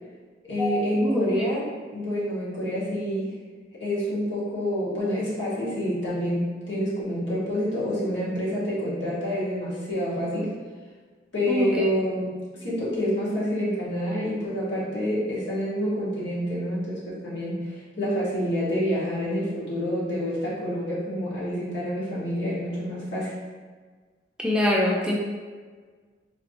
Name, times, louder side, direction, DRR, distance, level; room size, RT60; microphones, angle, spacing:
voice 1, 0.4-3.3 3.8-10.5 11.3-12.3 12.6-23.3, equal, 75° left, -8 dB, 1.4 m, -27 dB
voice 2, 1.0-1.5 11.5-11.9 24.4-25.1, left 1 dB, 5° right, -3 dB, 0.3 m, -24 dB
4.1 x 2.7 x 2.8 m, 1.5 s
head